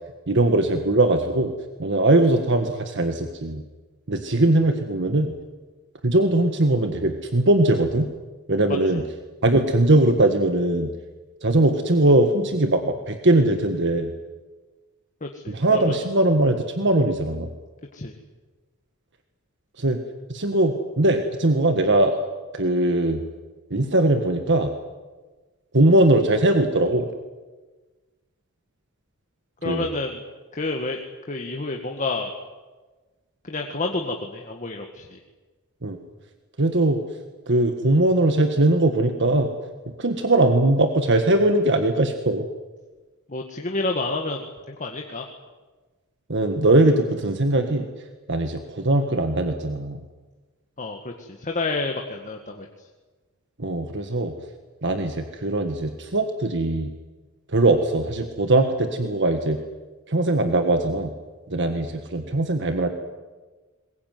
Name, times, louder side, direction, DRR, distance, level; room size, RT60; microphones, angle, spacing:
voice 1, 0.3-1.5 1.8-3.6 4.1-5.3 6.0-8.1 8.5-9.0 9.4-10.9 11.4-14.1 15.5-17.5 19.8-20.0 20.3-22.2 22.5-23.2 23.7-24.7 25.7-27.1 29.6-29.9 35.8-36.0 36.6-37.0 37.5-39.5 40.0-42.5 46.3-47.9 48.3-50.0 53.6-54.3 54.8-56.9 57.5-59.6 60.1-61.1 61.5-62.9, right 2 dB, 55° right, 6 dB, 1.7 m, -20 dB
voice 2, 15.2-16.0 17.9-18.1 29.6-30.2 30.5-31.0 31.3-32.3 33.4-35.2 43.3-45.3 50.8-52.7, left 3 dB, 35° left, 2 dB, 1.8 m, -29 dB
21.5 x 21.5 x 9.5 m, 1.3 s
head